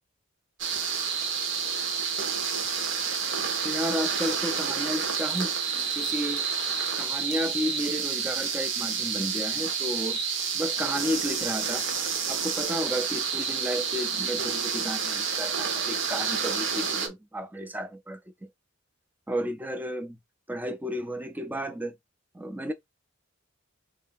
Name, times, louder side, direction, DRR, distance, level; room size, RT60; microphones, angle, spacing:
sound 1, 0.6-17.1, right 6 dB, 60° right, 0.9 m, -29 dB
voice 1, 3.6-6.5 7.0-10.2 10.5-11.9 12.3-18.5 19.3-20.2 20.5-21.9 22.3-22.7, equal, 10° right, 0.4 m, -32 dB
3.7 x 2.8 x 3.4 m
head